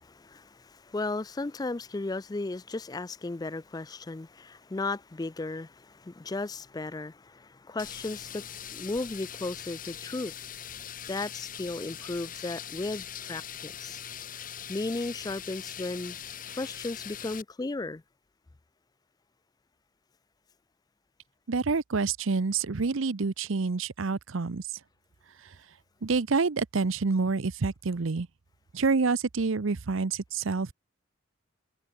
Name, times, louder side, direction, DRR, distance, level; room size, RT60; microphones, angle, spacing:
voice 1, 0.0-10.5 11.0-14.0 14.7-16.2 16.5-18.0, left 2 dB, 20° left, 0.4 m, -35 dB
sound 1, 7.8-17.4, left 9 dB, 40° left, 2.2 m, -41 dB
voice 2, 21.5-24.6 26.0-28.3 28.7-30.7, right 4 dB, 70° right, 0.7 m, -27 dB
head